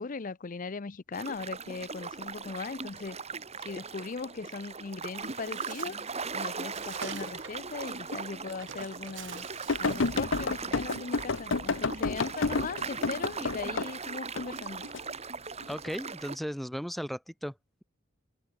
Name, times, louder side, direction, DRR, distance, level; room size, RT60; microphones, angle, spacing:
voice 1, 0.0-3.2 3.6-6.0 6.3-9.5 9.8-14.8, left 4 dB, 45° left, 0.6 m, -39 dB
sound 1, 1.1-16.4, right 5 dB, 35° right, 3.5 m, -39 dB
Bird, 5.2-10.3, right 7 dB, 75° right, 5.3 m, -47 dB
sound 2, 8.1-8.2 8.8-8.9 9.7-13.9 14.4-15.0 15.6-16.0, left 4 dB, 80° left, 0.9 m, -30 dB
voice 2, 15.7-17.5, equal, ahead, 0.7 m, -36 dB
head